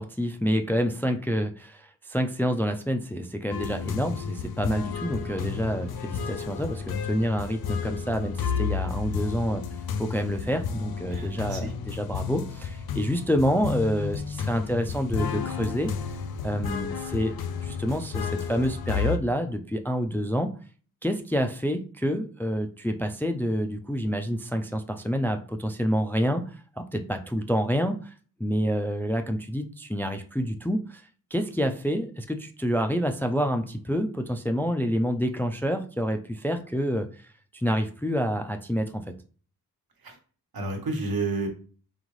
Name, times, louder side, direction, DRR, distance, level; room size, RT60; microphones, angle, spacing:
voice 1, 0.0-9.6 10.0-15.9 16.4-17.3 17.6-20.5 21.0-28.1 28.4-31.0 31.3-37.1 37.5-39.2, equal, 5° left, 6 dB, 0.3 m, -28 dB
sound 1, 3.5-19.2, left 6 dB, 80° left, 0.5 m, -32 dB
voice 2, 11.1-11.7 40.0-40.1 40.5-41.5, right 3 dB, 75° right, 3 dB, 1.1 m, -30 dB
3.9 x 3.5 x 3.1 m, 0.40 s
wide cardioid pair, 115°, 36 cm